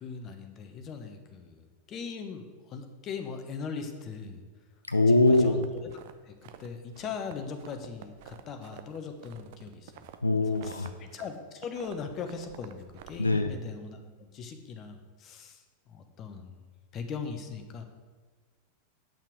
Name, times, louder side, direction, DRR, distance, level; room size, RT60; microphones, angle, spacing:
voice 1, 0.0-4.4 5.1-5.9 6.2-10.1 10.6-16.7 16.9-17.8, left 5 dB, 30° left, 6 dB, 1.0 m, -40 dB
voice 2, 4.9-5.6 10.2-10.9 13.2-13.5, left 2 dB, 80° left, 7 dB, 0.5 m, -23 dB
sound 1, 5.2-6.7 6.9-11.3 11.5-13.5, right 12 dB, 50° right, 0.6 m, -50 dB
8.9 x 5.9 x 6.1 m, 1.4 s
figure-of-eight pair, 90°, 0 cm